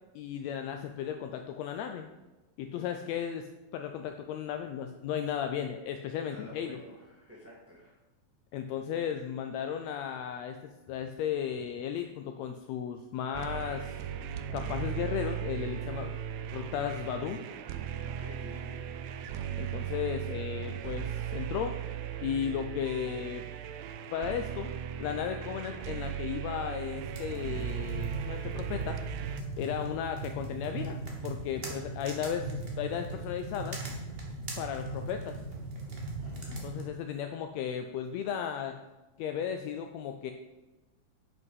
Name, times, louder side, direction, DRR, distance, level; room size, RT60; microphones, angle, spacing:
voice 1, 0.1-2.1 2.6-6.8 8.5-14.0 14.5-16.1 16.5-17.5 19.6-21.7 22.2-23.4 24.1-24.7 25.0-29.0 29.6-33.8 34.6-35.4 36.6-38.8 39.2-40.3, left 8 dB, 90° left, 6 dB, 1.5 m, -35 dB
voice 2, 6.3-8.0 18.0-18.9 31.6-32.2 36.2-36.4, equal, 5° right, -5 dB, 1.8 m, -51 dB
sound 1, 13.3-29.4, right 10 dB, 85° right, 1.5 m, -37 dB
sound 2, 27.0-36.9, right 2 dB, 65° right, 0.5 m, -39 dB
8.0 x 5.4 x 5.5 m, 1.1 s
omnidirectional pair, 3.6 m